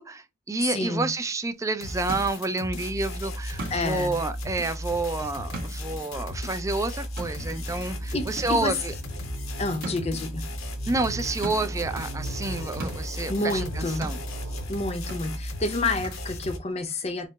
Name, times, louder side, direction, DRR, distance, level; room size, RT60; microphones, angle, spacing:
voice 1, 0.0-8.9 10.9-14.2, right 2 dB, 15° right, 0.3 m, -29 dB
voice 2, 0.6-1.1 3.7-4.2 7.8-8.7 9.6-10.4 13.3-14.1 14.7-17.3, left 2 dB, 30° left, 0.6 m, -29 dB
sound 1, 1.5-16.7, right 2 dB, 45° right, 1.3 m, -43 dB
sound 2, 1.8-16.6, left 1 dB, 75° left, 0.8 m, -35 dB
sound 3, 7.4-14.6, right 2 dB, 85° right, 0.9 m, -40 dB
4.1 x 2.0 x 3.9 m
head